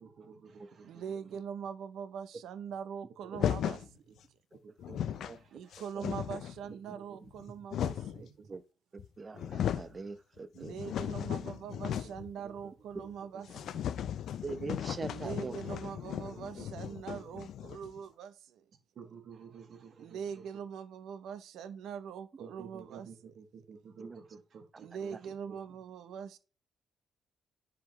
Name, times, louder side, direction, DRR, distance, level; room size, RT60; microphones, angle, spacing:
voice 1, 0.0-1.0 3.5-3.9 4.8-5.7 6.7-7.2 7.9-8.5 11.4-12.1 12.4-12.5 13.0-13.4 15.3-16.1 16.6-17.2 18.9-20.4 22.4-25.3, right 6 dB, 60° right, 1.6 m, -52 dB
voice 2, 0.8-3.9 5.5-8.6 10.5-13.8 15.1-18.6 20.0-23.3 24.8-26.4, right 7 dB, 80° right, 0.7 m, -42 dB
sound 1, 3.3-3.9 4.5-4.6 4.8-5.4 5.7-6.6 7.3-8.2 9.0-9.1 9.3-10.0 10.4-12.3 12.6-12.7 13.0-13.1 13.5-18.0, left 10 dB, 70° left, 0.4 m, -36 dB
voice 3, 8.9-10.9 14.4-15.5 24.0-24.2, right 4 dB, 30° right, 0.7 m, -42 dB
9.9 x 3.8 x 3.2 m
cardioid pair, 90°, 0 cm